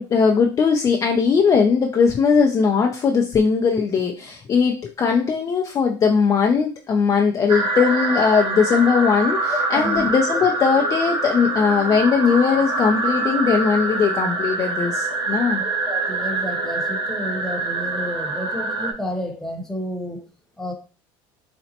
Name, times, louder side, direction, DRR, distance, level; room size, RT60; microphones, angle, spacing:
voice 1, 0.0-15.6, left 5 dB, 30° left, 2 dB, 0.4 m, -19 dB
sound 1, 7.5-18.9, right 2 dB, 40° right, 0.7 m, -25 dB
voice 2, 9.5-10.4 15.6-20.3 20.6-20.7, left 1 dB, 5° left, 1 dB, 0.9 m, -31 dB
4.1 x 2.0 x 2.8 m, 0.35 s
supercardioid pair, 105°, 11 cm